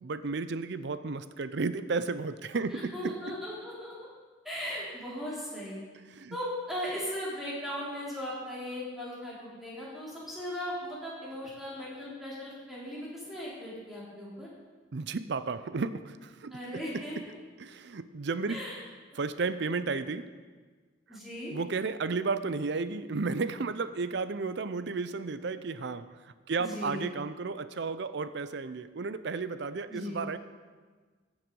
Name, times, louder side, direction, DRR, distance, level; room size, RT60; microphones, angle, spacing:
voice 1, 0.0-3.2 6.1-6.4 14.9-17.2 17.6-18.6 19.2-20.3 21.5-26.2 26.5-30.4, right 4 dB, 60° right, 13 dB, 0.5 m, -33 dB
voice 2, 2.7-3.9 4.4-5.8 6.3-14.5 16.5-17.2 18.5-18.8 21.1-21.5 26.6-27.1 29.9-30.2, equal, ahead, -7 dB, 3.3 m, -38 dB
14.5 x 7.3 x 5.3 m, 1.4 s
head